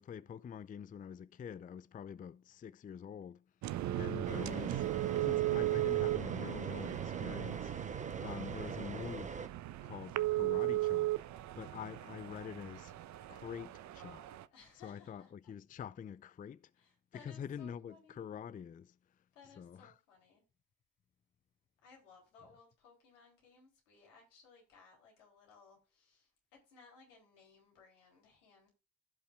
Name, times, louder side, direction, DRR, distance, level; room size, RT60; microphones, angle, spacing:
voice 1, 0.0-3.4 3.9-4.9 5.2-7.7 8.2-9.4 9.8-11.2 11.6-12.9 13.3-14.3 14.8-16.7 17.1-19.0 19.6-19.9, left 8 dB, 25° left, 0.4 m, -46 dB
sound 1, 3.6-14.4, right 15 dB, 50° right, 0.6 m, -36 dB
sound 2, 4.2-9.5, right 5 dB, 20° right, 0.8 m, -44 dB
voice 2, 8.1-8.4 11.6-12.0 14.5-15.5 16.8-18.3 19.3-20.4 21.8-28.7, left 5 dB, 80° left, 3.4 m, -62 dB
15.5 x 5.5 x 2.4 m
figure-of-eight pair, 45°, 37 cm